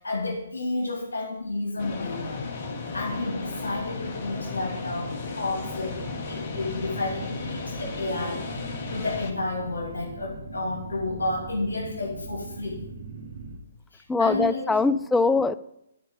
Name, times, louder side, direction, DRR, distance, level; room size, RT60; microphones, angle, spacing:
voice 1, 0.0-2.5 2.9-12.8 13.9-15.0, left 2 dB, 80° left, 0 dB, 2.5 m, -31 dB
sound 1, 1.8-9.3, left 4 dB, 45° left, 1.6 m, -35 dB
sound 2, 5.6-13.6, right 3 dB, 60° right, 1.8 m, -41 dB
voice 2, 14.1-15.6, left 3 dB, 10° left, 15 dB, 0.4 m, -22 dB
12.0 x 4.7 x 7.4 m, 0.80 s
figure-of-eight pair, 135°, 0 cm